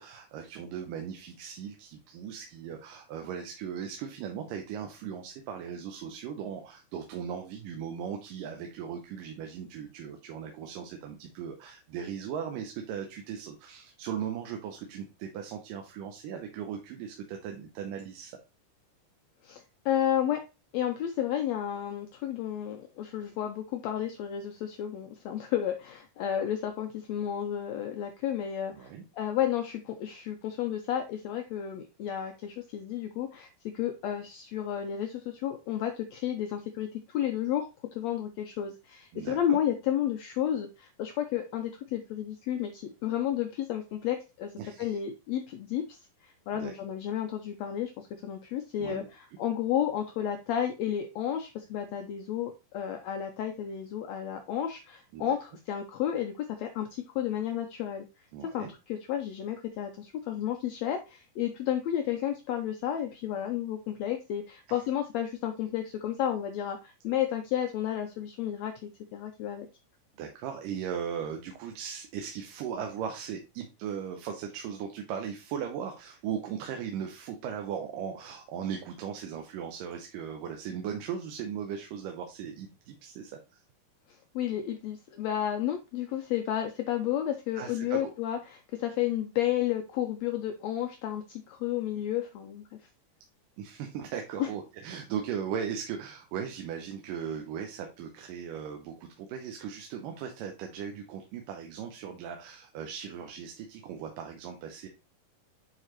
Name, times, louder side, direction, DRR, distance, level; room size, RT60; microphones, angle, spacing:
voice 1, 0.0-18.4 28.7-29.0 39.1-39.6 44.6-45.0 46.5-46.7 48.8-49.1 55.1-55.3 58.3-58.7 64.7-64.8 70.2-83.6 87.6-88.0 93.6-104.9, right 8 dB, 85° right, 4 dB, 2.5 m, -38 dB
voice 2, 19.4-20.4 20.7-44.5 44.8-58.0 58.4-69.7 84.1-92.8 94.4-94.5, left 10 dB, 80° left, 5 dB, 1.6 m, -32 dB
9.2 x 4.0 x 3.0 m, 0.28 s
omnidirectional pair, 3.8 m